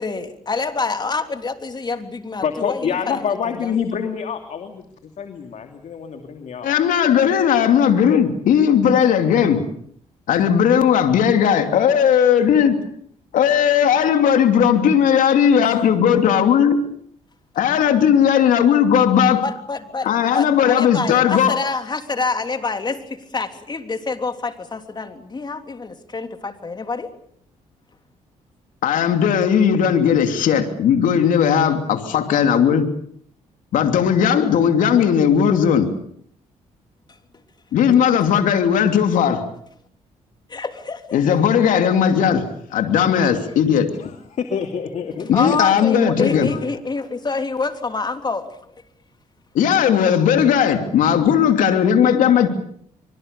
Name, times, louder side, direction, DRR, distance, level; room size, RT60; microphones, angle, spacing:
voice 1, 0.0-3.2 3.6-3.7 19.4-27.1 40.5-41.2 45.3-48.5, left 4 dB, 35° left, 7 dB, 3.3 m, -27 dB
voice 2, 2.4-6.7 44.0-45.3, left 7 dB, 60° left, 6 dB, 2.8 m, -27 dB
voice 3, 6.6-9.6 10.3-12.8 13.3-16.8 17.5-19.4 20.0-21.6 28.8-32.9 33.7-35.9 37.7-39.5 41.1-43.9 45.3-46.6 49.5-52.5, left 8 dB, 80° left, 7 dB, 2.9 m, -17 dB
24.5 x 24.5 x 6.8 m, 0.65 s
cardioid pair, 80°, 13 cm